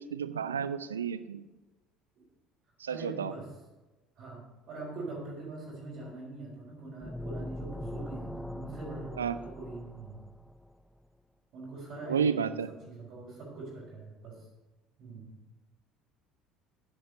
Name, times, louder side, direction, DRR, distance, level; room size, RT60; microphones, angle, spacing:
voice 1, 0.0-1.4 2.8-3.3 9.2-9.4 12.1-12.7, right 7 dB, 75° right, 14 dB, 0.4 m, -31 dB
voice 2, 2.9-3.5 4.2-10.2 11.5-12.6 12.9-14.5 15.0-15.4, right 3 dB, 45° right, -6 dB, 4.0 m, -43 dB
sound 1, 7.0-10.7, left 1 dB, 5° left, 0.4 m, -41 dB
10.0 x 9.7 x 4.0 m, 1.1 s
figure-of-eight pair, 60°, 0 cm